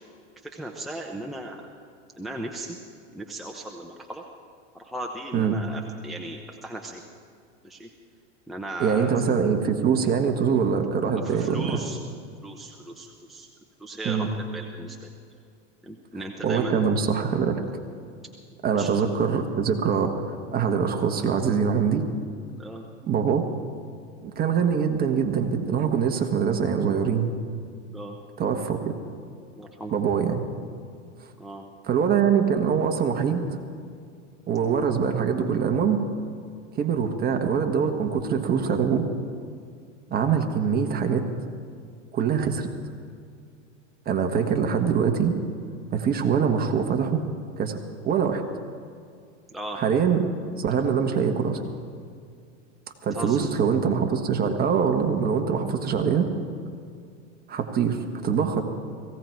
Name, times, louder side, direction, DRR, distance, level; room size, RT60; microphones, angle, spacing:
voice 1, 0.4-1.6 2.2-2.8 3.1-4.2 4.7-7.0 7.6-7.9 8.5-9.2 11.2-12.0 12.4-13.5 13.8-15.1 15.8-16.8 18.7-18.9 22.5-22.9 27.9-28.2 29.6-29.9 31.4-31.6 49.5-49.8 53.1-53.4, right 1 dB, ahead, 0 dB, 0.8 m, -37 dB
voice 2, 8.8-11.8 14.0-14.3 16.4-17.6 18.6-22.0 23.0-23.4 24.2-27.3 28.4-28.9 29.9-30.4 31.8-33.4 34.5-36.0 36.8-39.1 40.1-41.2 42.1-42.7 44.0-45.3 45.9-47.2 47.6-47.8 48.0-48.4 49.7-50.2 50.6-51.6 53.0-56.3 57.5-58.6, right 7 dB, 25° right, 4 dB, 1.4 m, -23 dB
18.0 x 16.0 x 4.6 m, 2.3 s
supercardioid pair, 130°, 37 cm